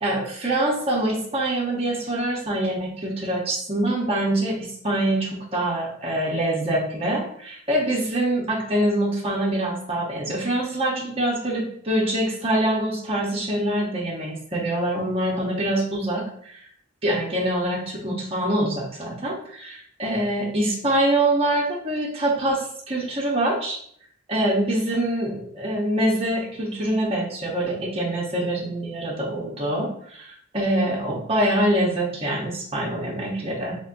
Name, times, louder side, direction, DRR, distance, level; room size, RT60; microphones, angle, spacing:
voice 1, 0.0-16.6 17.0-23.8 24.3-33.8, right 1 dB, 30° right, -3 dB, 0.8 m, -25 dB
4.0 x 2.9 x 2.5 m, 0.62 s
head